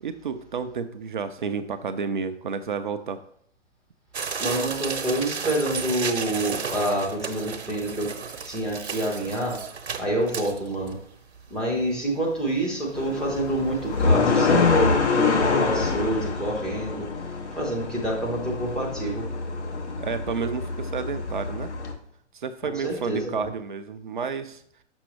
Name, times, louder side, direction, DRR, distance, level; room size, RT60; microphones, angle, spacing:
voice 1, 0.0-3.2 20.0-21.7 22.3-24.6, right 5 dB, 45° right, 8 dB, 0.4 m, -31 dB
sound 1, 4.1-10.9 11.4-11.5 11.7-11.8 12.4-12.6 13.0-13.1 13.4-13.5, right 6 dB, 65° right, 0.9 m, -33 dB
voice 2, 4.4-8.1 8.5-9.6 10.0-11.0 11.5-17.1 17.5-19.3 22.8-23.5, right 1 dB, ahead, -4 dB, 0.6 m, -27 dB
sound 2, 13.0-21.9, left 4 dB, 65° left, 1.2 m, -25 dB
6.2 x 5.9 x 3.0 m, 0.64 s
figure-of-eight pair, 125°, 36 cm